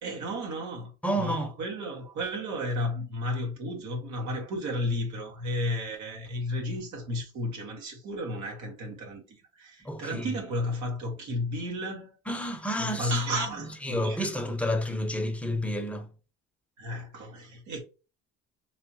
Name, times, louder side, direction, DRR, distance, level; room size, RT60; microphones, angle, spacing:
voice 1, 0.0-12.1 12.8-14.3 16.8-17.8, left 1 dB, 70° right, 1.7 m, -33 dB
voice 2, 1.0-1.5 9.8-10.3 12.3-13.2 13.8-16.1, equal, 5° left, 0.9 m, -30 dB
3.9 x 3.0 x 2.8 m
supercardioid pair, 75°, 29 cm